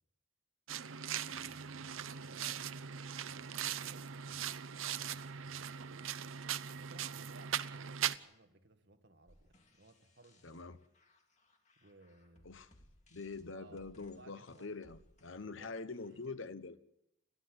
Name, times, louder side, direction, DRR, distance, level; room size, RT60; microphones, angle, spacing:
sound 1, 0.7-8.2, right 9 dB, 85° right, 0.7 m, -40 dB
voice 1, 1.3-6.2 6.7-10.9 11.8-12.5 13.5-14.7 15.3-16.4, right 2 dB, 55° right, 2.0 m, -62 dB
sound 2, 9.3-16.3, left 1 dB, 35° left, 2.4 m, -66 dB
voice 2, 10.4-10.8 12.4-12.7 13.1-16.8, left 3 dB, 75° left, 1.0 m, -45 dB
30.0 x 12.0 x 8.1 m
head